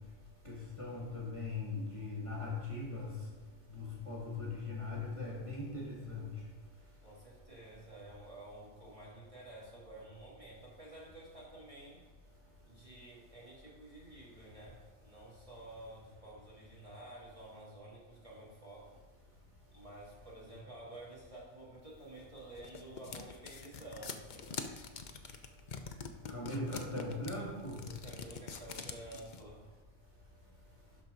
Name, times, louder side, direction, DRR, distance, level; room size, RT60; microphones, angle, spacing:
voice 1, 0.4-3.1 3.7-6.3 26.3-27.8, left 3 dB, 25° left, -4 dB, 1.6 m, -40 dB
voice 2, 7.0-12.0 12.7-18.9 19.7-24.9 27.8-29.6, right 1 dB, 30° right, -6 dB, 2.5 m, -51 dB
sound 1, 22.2-29.4, left 5 dB, 50° left, 0.7 m, -45 dB
12.0 x 4.5 x 5.1 m, 1.3 s
omnidirectional pair, 1.2 m